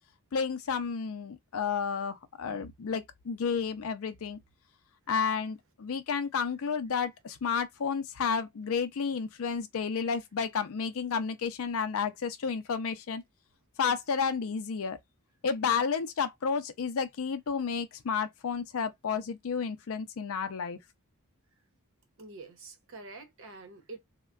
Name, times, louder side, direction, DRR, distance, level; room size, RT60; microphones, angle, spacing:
voice 1, 0.3-4.4 5.1-13.2 13.8-15.0 15.4-20.8, left 6 dB, 65° left, 0.5 m, -31 dB
voice 2, 22.2-24.0, right 3 dB, 60° right, 0.8 m, -46 dB
3.5 x 2.2 x 2.3 m
head